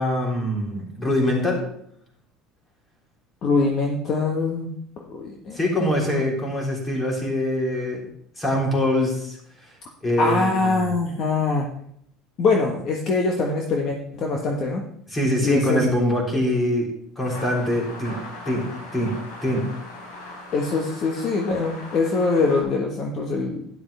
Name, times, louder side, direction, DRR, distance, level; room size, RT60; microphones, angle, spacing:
voice 1, 0.0-1.6 5.5-8.1 8.4-9.4 10.0-10.9 15.1-16.9 17.2-18.2 18.5-19.1 19.4-19.7, left 1 dB, 15° left, -2 dB, 3.8 m, -24 dB
voice 2, 3.4-4.7 5.1-6.1 10.2-11.7 12.4-14.8 15.4-15.8 20.5-23.6, left 3 dB, 40° left, 1 dB, 1.4 m, -23 dB
sound 1, 17.2-22.6, left 2 dB, 85° left, 4.3 m, -39 dB
12.0 x 11.0 x 3.5 m, 0.68 s
cardioid pair, 140°, 0 cm